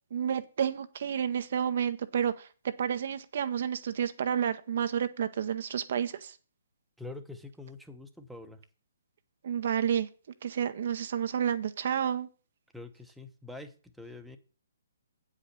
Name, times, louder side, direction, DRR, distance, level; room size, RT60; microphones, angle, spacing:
voice 1, 0.1-2.5 2.8-6.4 9.4-10.1 10.4-12.3, right 8 dB, 55° right, 10 dB, 0.6 m, -30 dB
voice 2, 7.0-8.6 12.7-14.4, left 2 dB, ahead, 5 dB, 0.8 m, -45 dB
8.4 x 5.0 x 6.7 m, 0.37 s
figure-of-eight pair, 135°, 0 cm